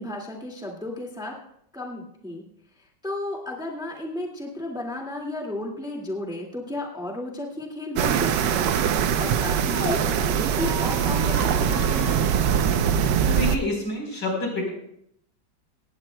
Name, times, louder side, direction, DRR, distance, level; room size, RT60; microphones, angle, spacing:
voice 1, 0.0-1.4 1.7-2.4 2.8-12.2, left 1 dB, ahead, -1 dB, 1.7 m, -34 dB
Squeak, 8.0-10.0 10.5-12.6, left 1 dB, 45° left, 2.1 m, -38 dB
sound 1, 8.0-13.6, right 8 dB, 70° right, 1.3 m, -22 dB
voice 2, 13.2-14.7, left 2 dB, 75° left, 0 dB, 4.9 m, -28 dB
18.5 x 16.5 x 2.2 m, 0.74 s
omnidirectional pair, 2.1 m